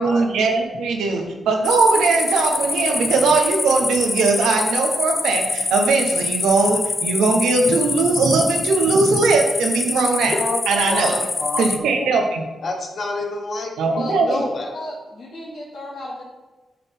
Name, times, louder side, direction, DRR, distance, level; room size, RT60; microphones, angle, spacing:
voice 1, 0.0-10.4 10.7-11.3 11.6-12.4 13.8-14.4, right 3 dB, 90° right, 4 dB, 0.9 m, -19 dB
sound 1, 1.6-11.8, left 3 dB, 45° left, 0.7 m, -25 dB
voice 2, 10.3-12.1 12.6-14.7, left 2 dB, 60° left, 1 dB, 1.4 m, -28 dB
voice 3, 13.9-14.4 14.7-16.2, left 1 dB, 80° left, -10 dB, 2.3 m, -32 dB
11.0 x 4.1 x 3.6 m, 1.2 s
supercardioid pair, 50°, 0 cm